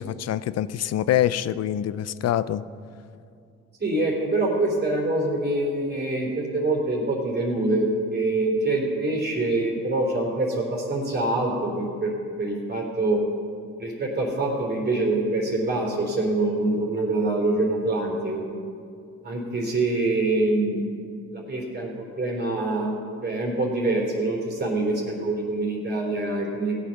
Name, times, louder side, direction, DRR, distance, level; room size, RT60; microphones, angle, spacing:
voice 1, 0.0-2.6, left 11 dB, 55° left, 16 dB, 0.5 m, -25 dB
voice 2, 3.8-13.2 13.8-18.5 19.2-20.8 21.3-22.9 23.2-26.7, right 2 dB, 35° right, -2 dB, 3.3 m, -25 dB
17.0 x 8.3 x 5.8 m, 2.4 s
cardioid pair, 90°, 30 cm